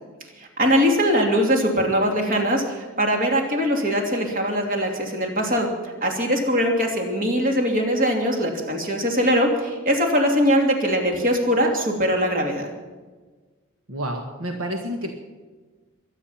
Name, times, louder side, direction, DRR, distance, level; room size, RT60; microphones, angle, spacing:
voice 1, 0.4-12.7, equal, 40° right, 2 dB, 2.8 m, -21 dB
voice 2, 13.9-15.1, equal, 70° right, 3 dB, 1.7 m, -29 dB
23.5 x 9.7 x 5.8 m, 1.3 s
head